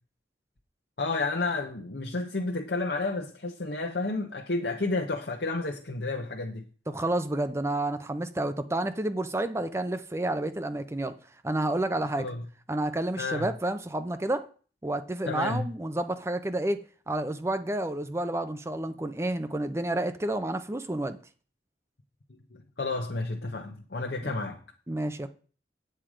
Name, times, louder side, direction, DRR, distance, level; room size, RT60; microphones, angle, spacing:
voice 1, 1.0-6.6 12.2-12.4 13.2-13.5 15.3-15.7 22.3-24.6, left 3 dB, 65° left, 1.0 m, -31 dB
voice 2, 6.9-11.1 11.4-12.3 12.7-14.5 14.8-21.2 24.2-24.3 24.9-25.3, right 1 dB, 15° right, 0.5 m, -30 dB
9.0 x 7.9 x 5.0 m
head